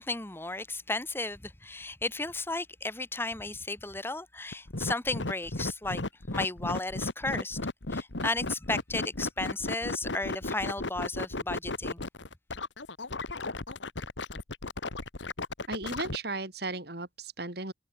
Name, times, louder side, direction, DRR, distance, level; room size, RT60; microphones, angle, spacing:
voice 1, 0.0-6.0 6.3-7.6 7.9-12.0, left 2 dB, 15° left, 1.3 m, -34 dB
sound 1, 4.5-16.2, left 2 dB, 85° left, 2.0 m, -34 dB
voice 2, 15.7-17.7, right 3 dB, 60° right, 5.9 m, -35 dB
head